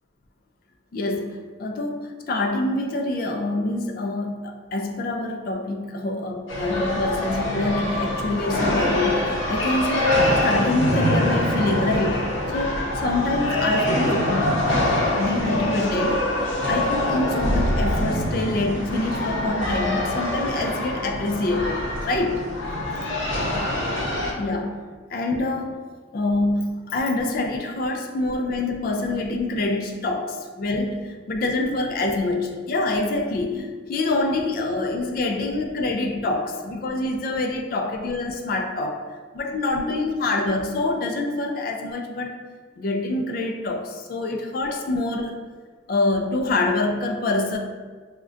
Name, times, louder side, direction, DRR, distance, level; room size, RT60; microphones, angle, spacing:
voice 1, 0.9-12.3 12.5-14.6 15.1-16.3 16.7-22.4 24.4-24.8 25.1-25.8 26.1-39.0 39.3-42.3 42.8-45.4 45.9-47.6, left 2 dB, 50° left, 4 dB, 0.3 m, -26 dB
sound 1, 6.5-24.3, left 1 dB, 90° left, 0.7 m, -24 dB
3.5 x 2.2 x 2.5 m, 1.5 s
head